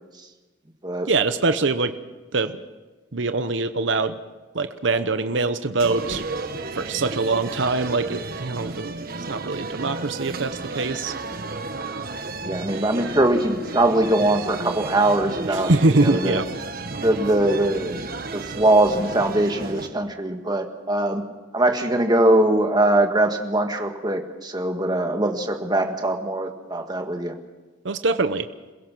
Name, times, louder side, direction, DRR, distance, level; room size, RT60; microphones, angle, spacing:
voice 1, 1.1-1.9 2.3-2.6 3.1-4.2 4.5-6.2 6.7-8.9 9.3-11.1 15.5-16.5 27.8-28.5, right 3 dB, 65° right, 10 dB, 0.9 m, -23 dB
sound 1, 5.8-19.9, right 3 dB, 50° right, 1.3 m, -33 dB
voice 2, 12.4-16.4 17.0-18.0 18.3-21.2 21.5-27.4, right 1 dB, 20° right, 5 dB, 1.7 m, -22 dB
27.5 x 17.0 x 6.2 m, 1.3 s
head